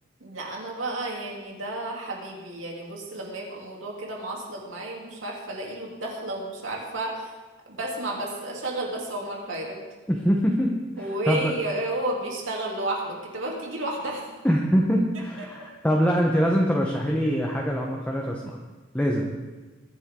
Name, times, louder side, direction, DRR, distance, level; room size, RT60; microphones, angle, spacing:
voice 1, 0.2-7.3 7.7-9.8 11.0-14.2, right 1 dB, 90° right, -2 dB, 3.3 m, -32 dB
voice 2, 10.1-11.5 14.4-18.6 18.9-19.3, equal, 10° left, -1 dB, 1.1 m, -24 dB
22.5 x 10.5 x 3.9 m, 1.2 s
head